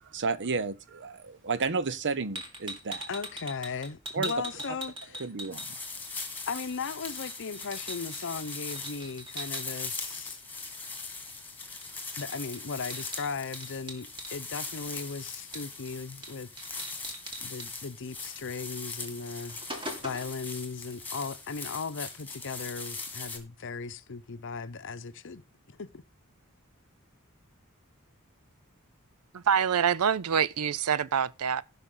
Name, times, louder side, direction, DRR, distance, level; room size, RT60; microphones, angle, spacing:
voice 1, 0.0-3.1 4.1-4.6 5.2-5.7, right 4 dB, 55° right, 0.8 m, -32 dB
sound 1, 2.3-6.1 6.4-9.6 11.8-11.9 12.2-14.3 15.5-15.9 16.2-16.3 16.6-17.7 18.8-18.9 19.2-20.4, right 1 dB, 25° right, 2.4 m, -41 dB
voice 2, 3.1-5.2 6.5-10.4 12.2-16.5 17.4-25.4 25.7-26.0, left 5 dB, 60° left, 0.8 m, -37 dB
sound 2, 5.5-23.4, left 3 dB, 10° left, 2.0 m, -40 dB
voice 3, 29.3-31.6, right 7 dB, 75° right, 0.5 m, -26 dB
16.5 x 5.7 x 3.8 m
head